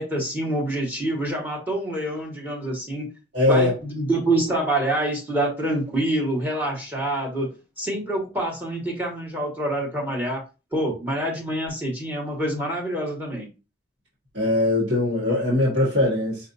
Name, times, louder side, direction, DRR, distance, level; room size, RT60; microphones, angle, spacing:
voice 1, 0.0-3.1 3.5-7.5 7.8-10.4 10.7-13.5, right 1 dB, 10° right, 1.3 m, -26 dB
voice 2, 3.3-3.7 14.3-16.4, left 2 dB, 75° right, 1.6 m, -21 dB
5.5 x 2.7 x 2.6 m
head